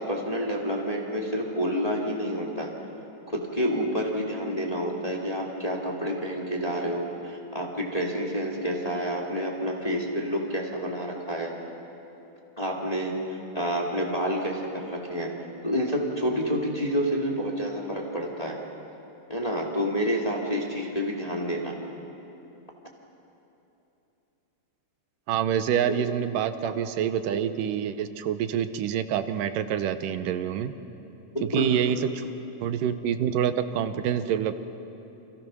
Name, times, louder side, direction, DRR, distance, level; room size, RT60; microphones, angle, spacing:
voice 1, 0.0-2.7 3.3-11.5 12.6-15.3 15.6-18.6 19.3-21.7 25.9-26.0 26.6-26.7 31.3-31.7, equal, 15° left, -1 dB, 2.0 m, -29 dB
voice 2, 25.3-30.7 31.4-32.3 32.6-34.5, right 9 dB, 85° right, 10 dB, 2.5 m, -27 dB
29.0 x 26.0 x 6.3 m, 2.9 s
omnidirectional pair, 3.7 m